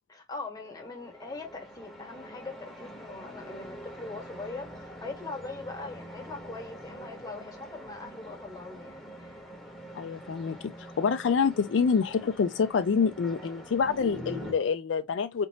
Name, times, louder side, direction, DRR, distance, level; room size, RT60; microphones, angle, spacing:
voice 1, 0.1-9.4, left 3 dB, 20° left, 1.4 m, -41 dB
sound 1, 0.6-14.5, equal, ahead, 1.2 m, -44 dB
voice 2, 9.9-10.7 11.0-15.5, left 5 dB, 75° left, 0.4 m, -26 dB
4.2 x 2.9 x 2.7 m
head